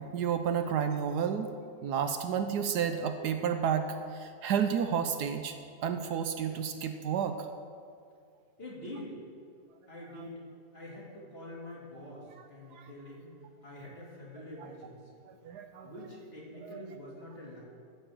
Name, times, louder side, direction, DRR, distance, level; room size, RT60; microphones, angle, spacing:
voice 1, 0.0-1.5 1.8-5.6 5.8-7.4 12.7-12.9 14.6-14.7 15.3-15.9 16.6-16.8, right 7 dB, 75° right, 7 dB, 1.2 m, -31 dB
voice 2, 8.6-9.1 9.9-10.4 10.7-13.3 13.6-15.2 15.8-17.6, left 1 dB, 35° left, -5 dB, 2.8 m, -45 dB
14.0 x 5.4 x 7.4 m, 2.3 s
omnidirectional pair, 1.9 m